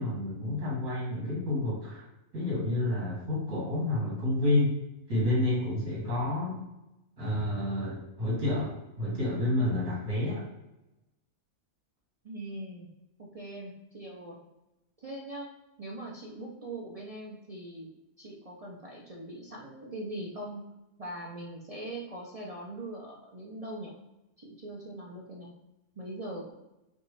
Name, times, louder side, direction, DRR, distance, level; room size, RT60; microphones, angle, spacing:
voice 1, 0.0-2.1 2.3-4.7 5.1-6.6 7.2-10.4, left 1 dB, 70° right, -5 dB, 2.1 m, -29 dB
voice 2, 12.2-12.9 13.2-14.4 15.0-15.5 15.8-17.9 18.2-20.6 21.0-23.9 24.4-25.5 26.0-26.5, right 1 dB, 55° right, -3 dB, 0.4 m, -41 dB
5.3 x 2.5 x 3.2 m, 0.95 s
omnidirectional pair, 1.6 m